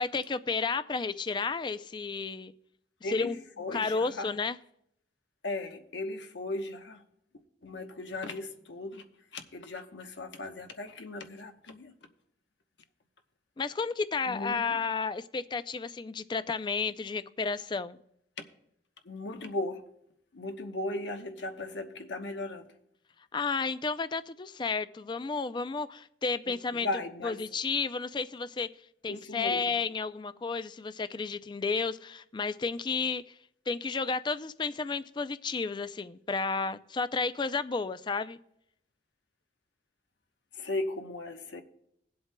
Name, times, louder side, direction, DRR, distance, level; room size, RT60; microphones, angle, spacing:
voice 1, 0.0-2.5 3.1-3.4 3.7-4.6 13.6-18.0 23.3-26.9 27.2-28.7 29.0-33.3 33.7-38.4, left 4 dB, 25° left, 0.3 m, -32 dB
voice 2, 3.0-4.3 5.4-7.0 7.6-9.1 9.3-11.9 14.3-14.8 19.0-19.9 20.3-22.7 26.7-27.4 29.1-29.8 40.5-41.6, left 2 dB, 90° left, 1.0 m, -37 dB
21.5 x 7.8 x 2.2 m
head